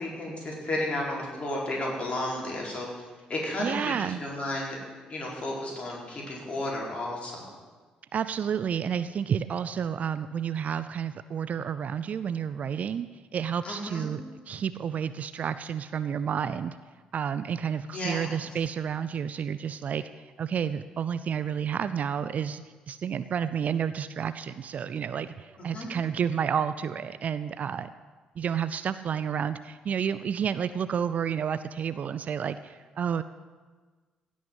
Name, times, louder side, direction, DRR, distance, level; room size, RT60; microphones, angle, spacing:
voice 1, 0.0-2.9 3.3-4.8 5.1-7.5 13.6-14.1 17.9-18.3 25.6-25.9, left 1 dB, 35° left, -3 dB, 4.5 m, -33 dB
voice 2, 3.6-4.2 8.1-13.1 13.3-16.8 17.1-20.1 20.4-27.9 28.4-33.2, right 8 dB, 45° right, 14 dB, 0.5 m, -30 dB
16.0 x 6.3 x 8.1 m, 1.4 s
figure-of-eight pair, 45°, 4 cm